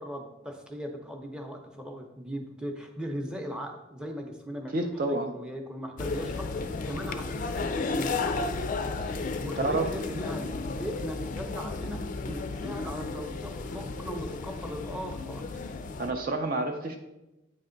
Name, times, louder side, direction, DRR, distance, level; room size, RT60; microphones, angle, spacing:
voice 1, 0.0-4.7 5.1-8.5 9.4-15.5, equal, 5° right, 3 dB, 0.7 m, -39 dB
voice 2, 4.7-5.3 9.0-9.3 9.6-9.9 16.0-17.0, right 2 dB, 45° right, 4 dB, 0.5 m, -29 dB
sound 1, 6.0-16.1, left 3 dB, 40° left, 0.4 m, -33 dB
8.7 x 3.3 x 3.8 m, 0.98 s
head